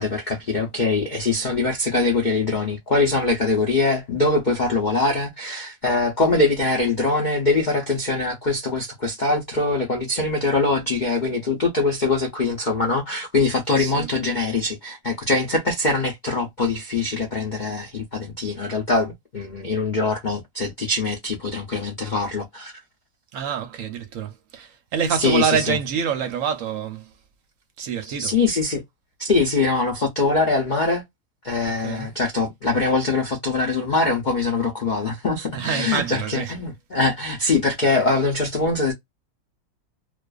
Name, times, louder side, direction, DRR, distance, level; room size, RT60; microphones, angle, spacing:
voice 1, 0.0-22.7 25.2-25.8 28.0-28.8 29.2-31.0 31.4-38.9, left 3 dB, 85° left, 0.4 m, -23 dB
voice 2, 13.7-14.1 23.3-27.1 27.8-28.4 31.8-32.1 35.5-36.5, right 7 dB, 65° right, 0.8 m, -26 dB
2.4 x 2.4 x 2.3 m
omnidirectional pair, 1.8 m